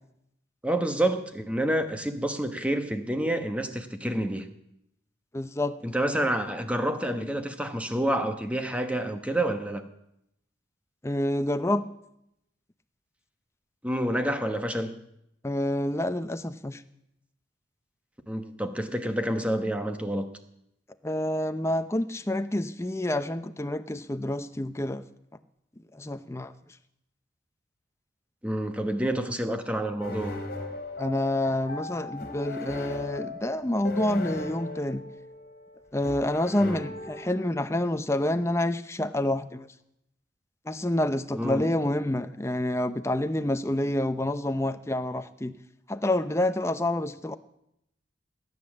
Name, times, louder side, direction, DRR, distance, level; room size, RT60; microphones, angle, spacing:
voice 1, 0.6-4.5 5.8-9.8 13.8-15.0 18.3-20.3 28.4-30.4 36.6-36.9 41.3-41.7, right 1 dB, 5° right, 7 dB, 1.0 m, -28 dB
voice 2, 5.3-5.8 11.0-11.8 15.4-16.8 21.0-25.0 25.9-26.5 31.0-35.0 35.9-39.7 40.7-45.5 45.9-47.4, left 1 dB, 15° left, 10 dB, 0.6 m, -28 dB
sound 1, 30.0-37.7, left 2 dB, 50° left, 2.5 m, -38 dB
18.5 x 9.7 x 7.2 m, 0.81 s
head